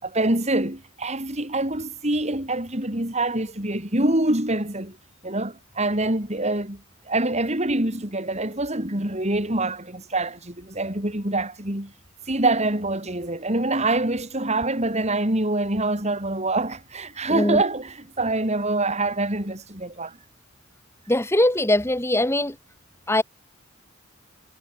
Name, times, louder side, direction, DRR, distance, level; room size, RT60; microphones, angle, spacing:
voice 1, 0.0-5.0 5.2-6.8 7.1-11.9 12.3-20.2, right 2 dB, 30° right, 4.7 m, -25 dB
voice 2, 17.3-17.6 21.1-22.5 23.1-23.2, left 1 dB, 10° left, 2.4 m, -21 dB
head